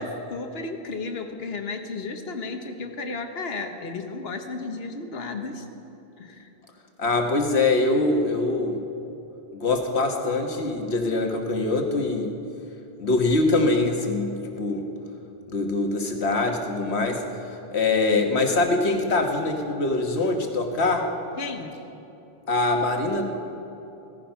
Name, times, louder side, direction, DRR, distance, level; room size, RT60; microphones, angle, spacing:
voice 1, 0.0-5.6 6.2-6.5 21.4-21.7, left 3 dB, 70° left, 5 dB, 1.4 m, -33 dB
voice 2, 7.0-8.8 9.5-12.4 13.0-14.9 15.5-21.1 22.5-23.2, left 2 dB, 85° left, 3 dB, 1.7 m, -23 dB
16.5 x 14.5 x 5.7 m, 3.0 s
omnidirectional pair, 1.1 m